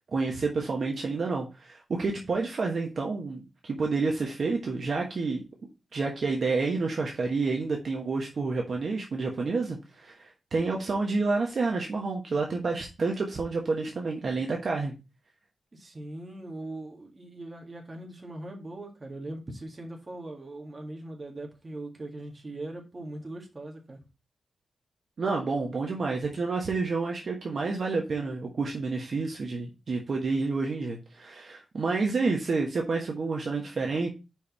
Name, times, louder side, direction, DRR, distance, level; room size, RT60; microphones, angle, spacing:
voice 1, 0.1-5.4 5.9-14.9 25.2-34.1, right 3 dB, 50° right, 1.2 m, -29 dB
voice 2, 15.7-24.0, right 1 dB, 25° right, 1.8 m, -40 dB
5.1 x 4.7 x 5.8 m
wide cardioid pair, 165°, 0 cm